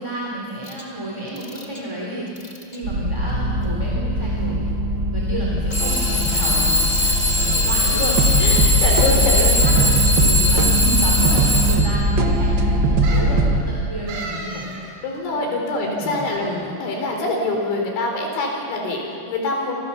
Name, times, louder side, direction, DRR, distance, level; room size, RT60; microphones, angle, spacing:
voice 1, 0.0-2.3 2.7-4.7 5.1-8.3 9.0-14.7 15.3-16.6, equal, 5° right, -4 dB, 3.0 m, -31 dB
Alarm / Clock, 0.7-0.8 1.3-1.8 2.3-2.7 3.6-3.7 5.7-12.1, left 1 dB, 20° left, 1.2 m, -21 dB
sound 1, 2.8-13.6, right 1 dB, 55° right, 1.2 m, -20 dB
voice 2, 8.1-9.7 15.0-19.8, left 2 dB, 85° left, 1 dB, 6.4 m, -25 dB
sound 2, 9.6-10.1 11.0-11.1 11.3-11.4 13.0-13.4 14.1-14.8 15.1-15.2, right 3 dB, 75° right, 5.8 m, -34 dB
27.5 x 26.5 x 7.2 m, 2.6 s
omnidirectional pair, 5.2 m